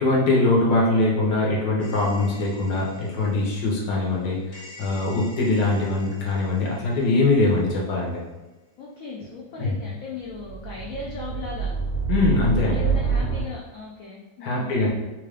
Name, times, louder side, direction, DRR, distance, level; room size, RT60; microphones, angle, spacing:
voice 1, 0.0-8.2 9.6-9.7 12.1-12.8 14.4-14.9, left 2 dB, 65° left, -3 dB, 1.3 m, -22 dB
sound 1, 1.8-2.9 4.5-6.3 10.3-13.4, right 5 dB, 35° left, 0.7 m, -29 dB
voice 2, 8.8-11.7 12.4-14.8, left 4 dB, 90° left, -3 dB, 0.7 m, -37 dB
3.7 x 2.4 x 3.2 m, 1.2 s
omnidirectional pair, 2.0 m